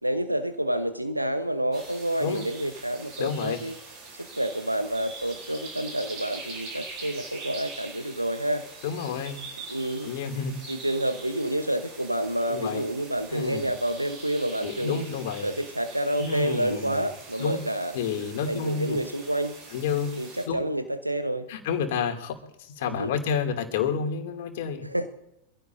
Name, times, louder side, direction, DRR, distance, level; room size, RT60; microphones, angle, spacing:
voice 1, 0.0-3.8 4.1-8.6 9.7-10.1 10.7-15.0 15.4-18.0 18.5-19.6 20.2-21.5 22.8-23.1 24.8-25.1, right 1 dB, 85° right, 9 dB, 1.0 m, -29 dB
sound 1, 1.7-20.5, right 3 dB, 40° right, 7.7 m, -43 dB
voice 2, 3.2-3.6 8.8-9.4 10.0-10.5 12.5-12.8 13.3-13.6 14.6-15.5 16.2-17.0 17.4-17.6 17.9-19.0 19.7-20.1 20.5-20.6 21.5-24.8, left 6 dB, 55° left, 4 dB, 2.6 m, -29 dB
25.5 x 16.0 x 2.7 m, 0.81 s
figure-of-eight pair, 90°, 0 cm